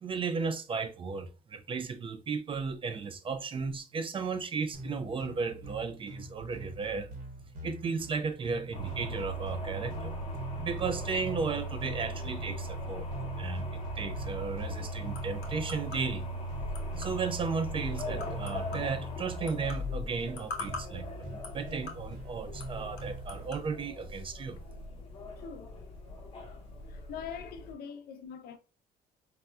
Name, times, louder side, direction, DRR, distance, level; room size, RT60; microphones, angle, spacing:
voice 1, 0.0-7.1 7.6-10.1 10.6-13.1 13.4-16.3 17.0-24.6, right 5 dB, 30° right, 0.4 m, -35 dB
sound 1, 4.7-23.6, right 1 dB, 60° right, 1.2 m, -45 dB
sound 2, 8.7-27.7, equal, 35° left, 0.8 m, -39 dB
sound 3, 14.2-23.7, left 3 dB, 85° left, 1.0 m, -47 dB
voice 2, 25.4-25.7 26.9-28.6, left 7 dB, 70° left, 0.5 m, -43 dB
4.1 x 2.2 x 2.2 m
cardioid pair, 110°, 17 cm